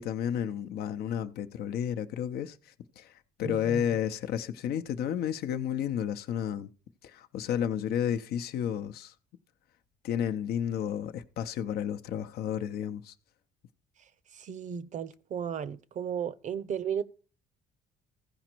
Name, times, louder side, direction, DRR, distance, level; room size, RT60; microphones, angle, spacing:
voice 1, 0.0-6.7 7.0-9.1 10.0-13.1, left 9 dB, 70° left, 0.7 m, -32 dB
voice 2, 3.4-3.8 14.3-17.0, right 8 dB, 45° right, 0.6 m, -34 dB
15.0 x 5.1 x 4.5 m
cardioid pair, 110°, 17 cm